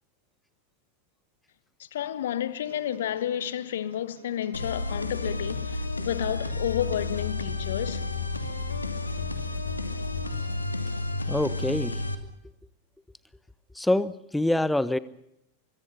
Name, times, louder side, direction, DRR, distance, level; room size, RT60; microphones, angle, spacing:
voice 1, 1.9-8.0, left 10 dB, 60° left, 1.4 m, -31 dB
sound 1, 2.6-10.6, right 6 dB, 60° right, 3.5 m, -52 dB
sound 2, 4.5-12.1, left 3 dB, 80° left, 2.5 m, -31 dB
voice 2, 11.3-12.0 13.7-15.0, left 1 dB, 5° left, 1.2 m, -25 dB
24.5 x 23.5 x 5.6 m
figure-of-eight pair, 90°, 0 cm